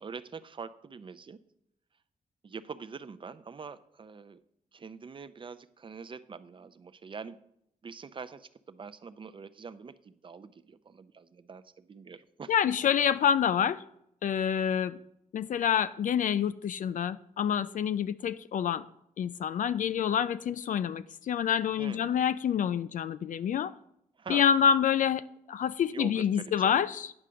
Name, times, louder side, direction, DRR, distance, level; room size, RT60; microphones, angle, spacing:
voice 1, 0.0-1.4 2.4-4.4 4.7-7.4 7.8-12.5 21.8-22.1 24.2-24.5 25.9-26.7, right 5 dB, 35° right, 0.5 m, -44 dB
voice 2, 12.5-13.8 14.2-15.0 15.3-18.9 19.2-23.7 24.3-27.1, left 8 dB, 65° left, 0.4 m, -27 dB
9.8 x 5.0 x 6.7 m
cardioid pair, 110°, 15 cm